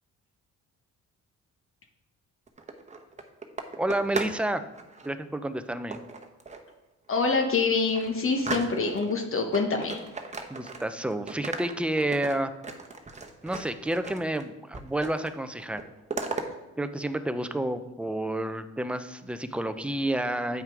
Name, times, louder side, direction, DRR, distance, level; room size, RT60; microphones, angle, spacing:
sound 1, 2.5-4.4 4.7-5.1 5.9-6.7 7.2-7.3 7.6-9.1 9.5-11.0 11.3-14.4 14.7-15.3 15.6-16.5, right 3 dB, 25° right, 1.0 m, -37 dB
voice 1, 3.8-4.6 5.0-6.0 10.5-12.5 13.4-15.8 16.8-20.6, right 1 dB, 5° right, 9 dB, 0.6 m, -30 dB
voice 2, 7.1-10.0, left 4 dB, 45° left, 4 dB, 1.1 m, -26 dB
9.1 x 5.6 x 4.7 m, 0.99 s
cardioid pair, 90°, 30 cm